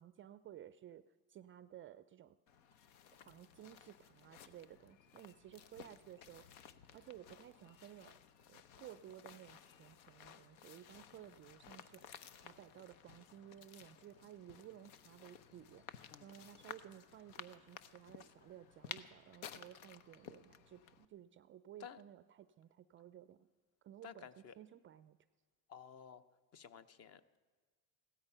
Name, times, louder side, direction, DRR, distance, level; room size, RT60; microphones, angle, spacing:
voice 1, 0.0-2.4 3.1-6.5 6.9-8.2 8.5-12.0 12.3-15.9 16.2-23.5 23.8-24.3 24.6-25.2, right 11 dB, 30° right, 14 dB, 0.4 m, -56 dB
footsteps on dry grass with light birds, 2.5-21.0, left 8 dB, 85° left, 0.9 m, -56 dB
voice 2, 24.0-24.5 25.7-26.2 26.5-27.4, left 8 dB, 35° left, 14 dB, 0.8 m, -54 dB
16.5 x 13.0 x 5.6 m, 1.5 s
supercardioid pair, 105°, 41 cm